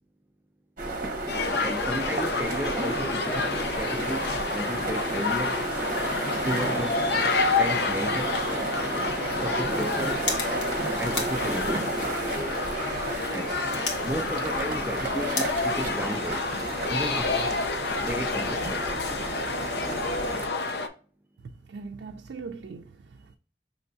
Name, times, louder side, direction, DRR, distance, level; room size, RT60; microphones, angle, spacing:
sound 1, 0.8-20.5, right 2 dB, 45° right, 0.8 m, -32 dB
sound 2, 1.3-20.9, left 4 dB, 70° left, 0.5 m, -29 dB
voice 1, 1.6-5.6 6.4-7.0 7.6-8.4 9.4-10.3 11.0-11.9 13.3-13.6 14.0-16.4 16.9-17.6 18.0-18.8, right 1 dB, 10° right, 0.3 m, -33 dB
sound 3, 9.5-16.8, left 3 dB, 85° left, 1.2 m, -38 dB
voice 2, 21.7-23.4, right 4 dB, 85° right, 0.4 m, -40 dB
5.4 x 3.1 x 2.5 m
head